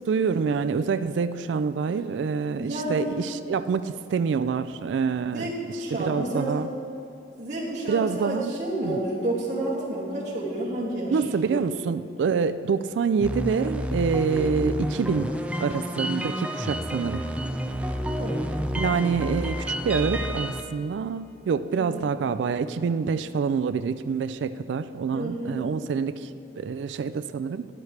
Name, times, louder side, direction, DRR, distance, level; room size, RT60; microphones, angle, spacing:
voice 1, 0.0-6.7 7.9-8.5 8.8-9.0 11.1-17.2 18.8-26.3 26.6-27.7, right 5 dB, 90° right, 12 dB, 0.3 m, -26 dB
voice 2, 2.6-3.1 5.3-6.5 7.4-11.2 11.4-11.6 18.2-18.4 21.8-22.0 25.1-25.6, right 1 dB, 40° right, -7 dB, 2.3 m, -30 dB
sound 1, 13.2-20.6, equal, 5° right, 0.4 m, -29 dB
13.0 x 11.0 x 3.3 m, 2.7 s
head